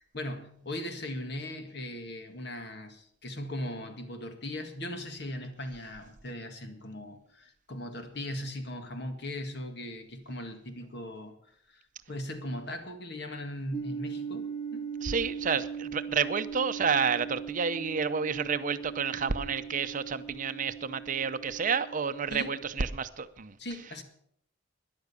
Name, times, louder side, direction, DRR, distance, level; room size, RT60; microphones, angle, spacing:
voice 1, 0.0-11.4 11.7-11.8 12.1-14.9 22.3-22.5 23.6-24.0, left 1 dB, 60° left, 1.9 m, -39 dB
sound 1, 13.7-22.7, right 6 dB, 25° left, 1.6 m, -40 dB
voice 2, 15.0-23.6, right 6 dB, 40° right, 0.6 m, -30 dB
13.0 x 11.0 x 6.9 m
head